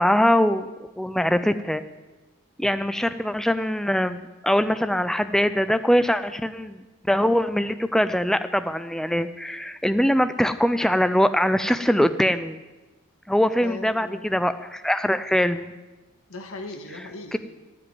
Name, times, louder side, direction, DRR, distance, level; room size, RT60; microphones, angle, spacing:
voice 1, 0.0-1.8 2.6-12.6 13.3-15.8 17.3-17.4, equal, ahead, 11 dB, 0.3 m, -22 dB
voice 2, 13.6-14.2 16.3-17.4, left 2 dB, 80° left, 3 dB, 1.5 m, -38 dB
13.5 x 5.2 x 9.0 m, 1.2 s
head